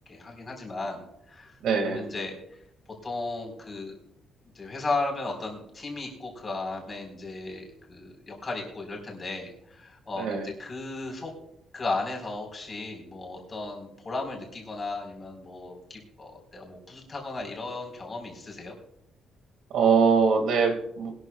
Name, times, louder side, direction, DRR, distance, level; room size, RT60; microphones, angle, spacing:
voice 1, 0.1-1.5 1.8-2.4 3.0-4.0 4.5-11.3 11.7-18.7, left 3 dB, 25° left, 0 dB, 4.0 m, -35 dB
voice 2, 1.6-2.1 10.2-10.5 19.7-21.1, right 5 dB, 70° right, 5 dB, 1.9 m, -22 dB
21.0 x 13.0 x 2.3 m, 0.76 s
cardioid pair, 165°, 0 cm